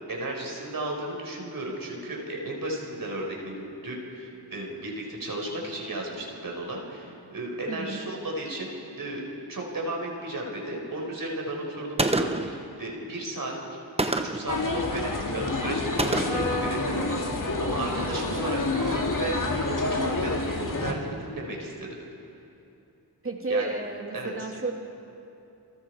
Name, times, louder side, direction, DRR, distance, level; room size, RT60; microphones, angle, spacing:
voice 1, 0.1-13.5 14.0-22.0 23.5-23.6 24.1-24.5, right 1 dB, 55° right, -1 dB, 4.9 m, -34 dB
voice 2, 7.7-8.0 23.2-24.7, right 3 dB, 30° right, 1 dB, 2.9 m, -31 dB
Gunshot gunfire, 12.0-12.6 14.0-14.5 16.0-16.6, right 2 dB, 15° right, 1.0 m, -26 dB
sound 1, 14.5-20.9, left 2 dB, 50° left, 2.5 m, -28 dB
29.0 x 22.5 x 4.8 m, 2.7 s
wide cardioid pair, 90°, 40 cm